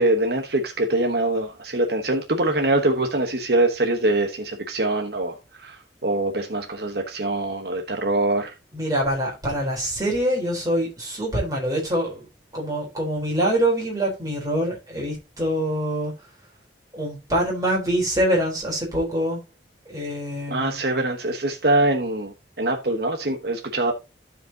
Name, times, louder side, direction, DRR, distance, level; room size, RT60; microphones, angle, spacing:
voice 1, 0.0-8.5 20.5-23.9, right 2 dB, 60° right, 1.2 m, -23 dB
voice 2, 8.7-12.3 12.5-16.1 16.9-19.4 19.9-20.8, right 1 dB, 20° right, 4.0 m, -25 dB
15.0 x 5.2 x 2.9 m
head